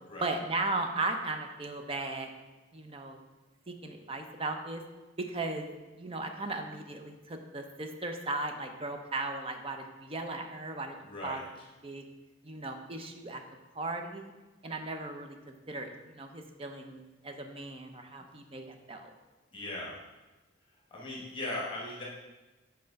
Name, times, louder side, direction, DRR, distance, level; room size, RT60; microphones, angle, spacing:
voice 1, 0.2-2.3 2.7-3.2 3.7-4.8 5.2-5.7 6.0-11.0 11.2-11.4 11.8-12.0 12.4-13.4 13.7-14.3 14.6-15.4 15.7-19.1, right 2 dB, 30° right, 5 dB, 0.6 m, -36 dB
voice 2, 11.0-11.4 19.5-20.0 20.9-22.0, left 2 dB, 25° left, -4 dB, 1.1 m, -38 dB
5.7 x 4.4 x 5.2 m, 1.2 s
head